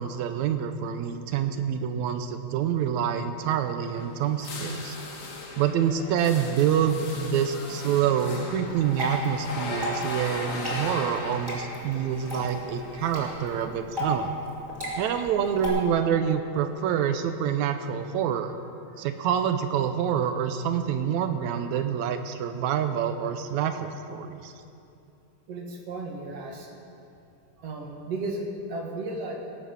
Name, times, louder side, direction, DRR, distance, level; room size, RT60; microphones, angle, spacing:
voice 1, 0.0-5.0 5.6-14.3 15.0-18.6 19.0-24.5, right 8 dB, 80° right, 8 dB, 1.9 m, -27 dB
sound 1, 3.8-13.7, left 3 dB, 70° left, 0.7 m, -38 dB
Water / Drip, 8.7-15.7, equal, 5° right, 3.2 m, -35 dB
voice 2, 25.5-26.7 27.6-29.3, right 2 dB, 60° right, 0 dB, 2.5 m, -34 dB
17.5 x 8.4 x 7.0 m, 2.6 s
omnidirectional pair, 3.4 m